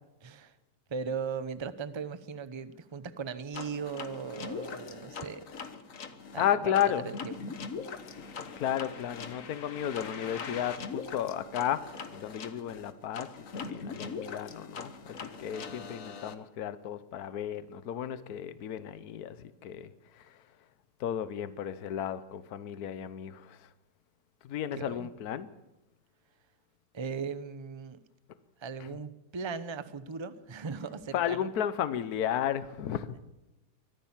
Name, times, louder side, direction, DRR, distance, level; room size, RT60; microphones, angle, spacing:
voice 1, 0.2-0.5 0.9-5.5 6.3-7.4 24.8-25.1 26.9-28.0 28.6-31.5, right 5 dB, 25° right, 13 dB, 0.7 m, -38 dB
sound 1, 3.5-16.3, left 5 dB, 55° left, 1.6 m, -41 dB
voice 2, 6.3-7.0 8.6-19.9 20.2-20.3 21.0-23.7 24.4-25.5 31.1-33.1, left 10 dB, 70° left, 14 dB, 1.4 m, -33 dB
24.0 x 15.0 x 7.3 m, 0.95 s
omnidirectional pair, 1.7 m